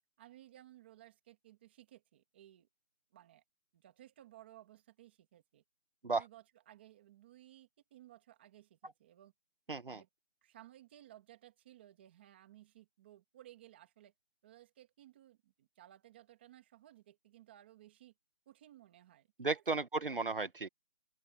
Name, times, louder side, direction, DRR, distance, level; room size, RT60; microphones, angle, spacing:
voice 1, 0.2-2.7 3.1-3.4 3.7-5.6 6.0-9.3 9.9-10.1 10.4-14.1 14.4-18.1 18.5-19.3 19.5-19.8, right 13 dB, 10° right, 2.0 m, -59 dB
voice 2, 9.7-10.0 19.4-20.7, right 3 dB, 40° right, 1.5 m, -34 dB
open air
figure-of-eight pair, 175°, 40 cm